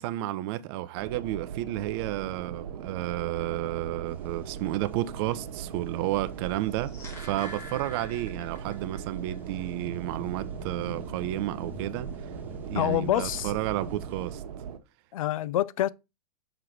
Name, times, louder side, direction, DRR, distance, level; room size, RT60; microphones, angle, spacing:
voice 1, 0.0-6.9 7.2-12.1 12.6-14.4, right 15 dB, 40° right, 0.6 m, -31 dB
sound 1, 1.0-14.8, right 8 dB, 65° right, 1.2 m, -40 dB
sound 2, 4.1-14.4, equal, 10° right, 1.3 m, -46 dB
sound 3, 6.6-9.0 9.3-9.4, left 2 dB, 15° left, 1.2 m, -45 dB
voice 2, 12.7-13.5 15.1-15.9, left 12 dB, 60° left, 0.4 m, -26 dB
6.5 x 3.8 x 4.5 m
hypercardioid pair, 135°, 20 cm